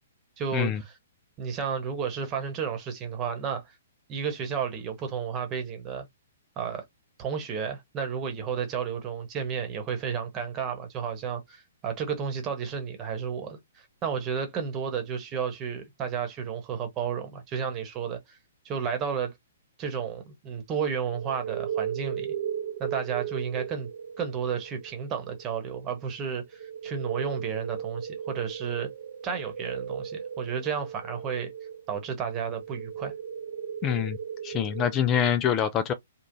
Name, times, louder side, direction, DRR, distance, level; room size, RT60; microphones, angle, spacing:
voice 1, 0.4-1.0 1.4-3.6 4.1-6.1 6.6-6.8 7.2-18.4 18.6-19.3 19.8-22.3 22.8-23.9 24.2-28.9 29.2-31.5 31.9-33.1, right 7 dB, 25° right, 1.2 m, -32 dB
sound 1, 21.1-35.3, right 8 dB, 60° right, 1.1 m, -37 dB
voice 2, 33.8-34.2 34.4-35.9, left 9 dB, 25° left, 0.3 m, -25 dB
3.5 x 2.4 x 2.6 m
figure-of-eight pair, 120°, 0 cm